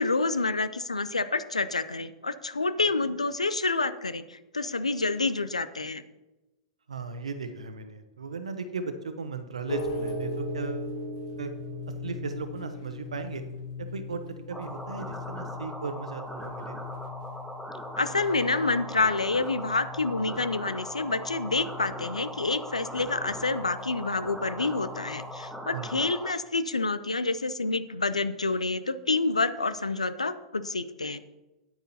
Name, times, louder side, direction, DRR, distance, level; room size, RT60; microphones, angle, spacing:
voice 1, 0.0-6.0 18.0-31.2, left 3 dB, 90° left, 14 dB, 0.6 m, -28 dB
voice 2, 6.9-10.9 11.4-11.5 12.0-13.4 13.8-14.2 14.5-16.8 25.7-26.0, right 4 dB, 80° right, 9 dB, 1.0 m, -36 dB
sound 1, 9.7-25.5, left 2 dB, 55° left, 1.6 m, -39 dB
sound 2, 14.5-26.3, equal, 5° right, 1.2 m, -40 dB
9.6 x 8.9 x 4.2 m, 1.0 s
figure-of-eight pair, 100°, 3 cm